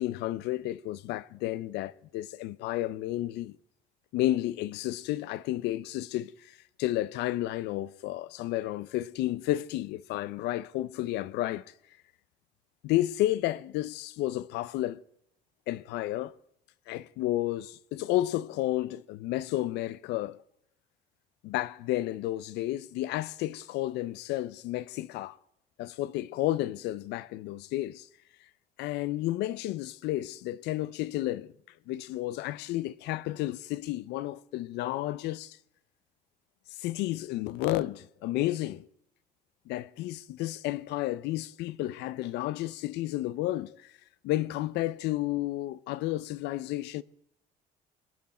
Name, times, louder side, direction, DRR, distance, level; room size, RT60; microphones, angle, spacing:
voice 1, 0.0-3.6 4.1-11.6 12.8-15.0 15.7-16.3 16.9-20.4 21.4-25.4 25.8-28.1 28.8-31.5 31.9-35.6 36.8-38.8 39.7-43.9 44.2-47.0, left 15 dB, 90° left, 0.6 m, -32 dB
23.0 x 9.4 x 4.3 m
cardioid pair, 110°, 17 cm